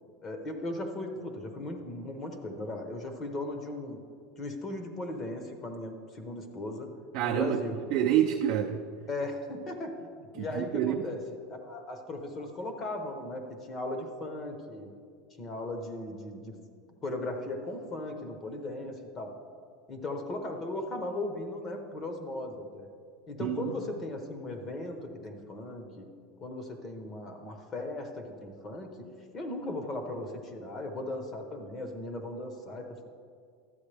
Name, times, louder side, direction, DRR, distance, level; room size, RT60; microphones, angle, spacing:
voice 1, 0.2-4.0 4.4-6.9 7.2-7.8 9.1-11.2 11.5-14.9 15.4-16.5 17.0-19.3 19.9-22.9 23.3-26.1 26.4-29.1 29.3-33.0, left 2 dB, 25° left, 5 dB, 0.9 m, -37 dB
voice 2, 7.1-7.6 7.9-8.8 10.4-11.1 23.4-23.7, right 10 dB, 50° right, 1 dB, 0.5 m, -27 dB
12.5 x 8.0 x 3.4 m, 2.2 s
supercardioid pair, 155°, 0 cm